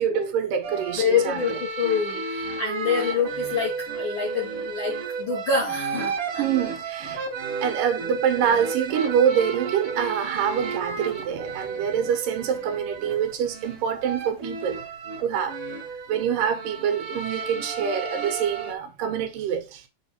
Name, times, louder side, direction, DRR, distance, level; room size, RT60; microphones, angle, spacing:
voice 1, 0.0-1.6 6.4-7.3 7.6-14.8 15.2-15.5 16.1-19.8, right 8 dB, 80° right, 2.6 m, -25 dB
sound 1, 0.6-18.7, right 4 dB, 50° right, 2.1 m, -33 dB
voice 2, 1.0-6.4 7.1-7.2, left 5 dB, 65° left, 1.3 m, -26 dB
6.7 x 4.1 x 4.3 m
omnidirectional pair, 3.9 m